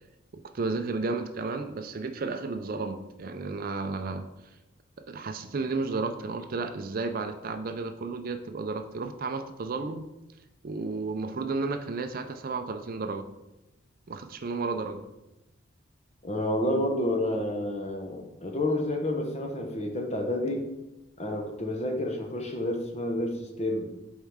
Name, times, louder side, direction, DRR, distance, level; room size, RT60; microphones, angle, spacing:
voice 1, 0.3-4.2 5.1-10.0 10.6-13.2 14.1-15.0, right 3 dB, 45° right, 8 dB, 0.4 m, -32 dB
voice 2, 16.2-20.7 21.2-23.9, left 1 dB, 30° left, 3 dB, 0.9 m, -29 dB
7.2 x 4.6 x 3.6 m, 0.97 s
head